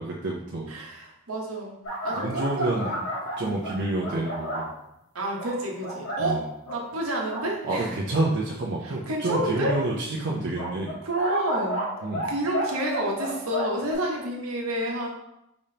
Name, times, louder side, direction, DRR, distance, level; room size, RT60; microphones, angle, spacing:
voice 1, 0.0-0.8 2.1-3.0 3.4-4.7 6.2-6.4 7.6-11.0 12.0-12.3, right 2 dB, 55° right, -3 dB, 0.5 m, -28 dB
voice 2, 0.7-3.0 3.4-3.8 5.1-7.9 8.8-9.7 11.0-11.8 12.2-15.1, right 1 dB, 75° right, -1 dB, 1.0 m, -29 dB
sound 1, 1.8-4.7 5.4-6.2 6.7-6.8 7.2-7.5 8.1-8.2 9.5-9.7 10.5-12.3 12.5-13.9, equal, 70° left, 1.4 m, -32 dB
5.0 x 3.5 x 2.8 m, 0.84 s
head